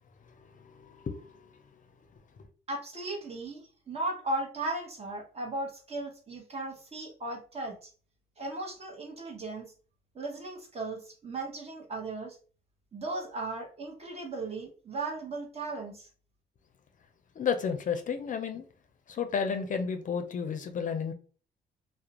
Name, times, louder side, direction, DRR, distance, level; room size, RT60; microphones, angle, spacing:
voice 1, 0.6-1.2 17.4-18.6 19.1-21.1, left 6 dB, 45° left, 0.5 m, -31 dB
voice 2, 2.7-7.9 8.4-9.7 10.1-12.4 12.9-16.1, right 2 dB, 35° right, 0.9 m, -36 dB
2.4 x 2.0 x 2.9 m
cardioid pair, 80°, 19 cm